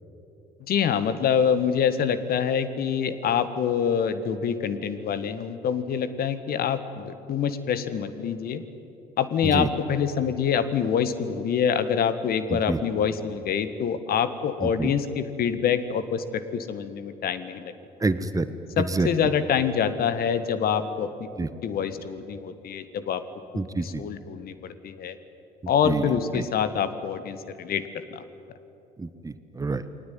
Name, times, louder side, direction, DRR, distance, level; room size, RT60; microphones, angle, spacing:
voice 1, 0.7-8.6 9.2-17.7 18.8-21.3 21.6-23.2 23.5-25.2 25.7-28.2, left 7 dB, 50° left, 13 dB, 1.7 m, -26 dB
voice 2, 14.6-14.9 18.0-18.5 18.8-19.1 21.4-21.5 23.6-24.0 25.8-26.4 29.0-29.8, right 3 dB, 15° right, 12 dB, 1.4 m, -27 dB
29.0 x 21.0 x 9.4 m, 2.9 s
figure-of-eight pair, 55°, 20 cm